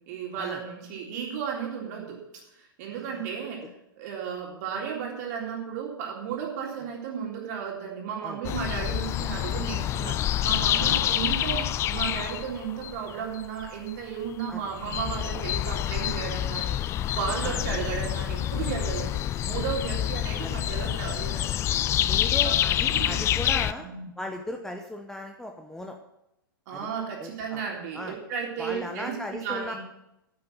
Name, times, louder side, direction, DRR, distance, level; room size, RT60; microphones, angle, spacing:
voice 1, 0.1-2.2 2.8-3.7 4.0-21.6 22.4-22.5 22.9-23.2 23.8-24.1 26.7-29.8, right 7 dB, 45° right, -1 dB, 3.5 m, -34 dB
sound 1, 8.4-13.9 14.4-14.5 14.7-23.7, left 12 dB, 20° left, 0.4 m, -27 dB
voice 2, 20.0-20.6 22.0-23.9 24.2-26.0 26.7-26.9 27.2-27.6 27.9-28.2 28.6-29.7, left 1 dB, 5° left, 3 dB, 0.9 m, -37 dB
8.9 x 8.6 x 7.7 m, 0.84 s
figure-of-eight pair, 105°, 12 cm